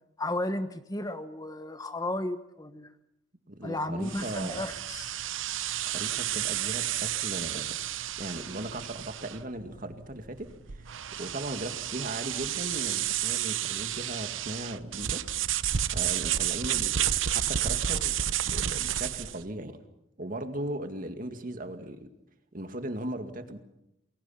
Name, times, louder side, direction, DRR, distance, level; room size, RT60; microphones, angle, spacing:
voice 1, 0.2-2.9 3.6-5.1, left 1 dB, 20° left, 9 dB, 1.2 m, -33 dB
voice 2, 3.5-4.7 5.8-7.7 8.2-15.2 15.8-18.2 18.5-19.8 20.2-22.1 22.5-23.6, right 1 dB, 45° right, 7 dB, 2.2 m, -38 dB
sound 1, 4.0-19.4, right 11 dB, 80° right, 0.8 m, -31 dB
29.0 x 22.0 x 5.8 m, 0.82 s
head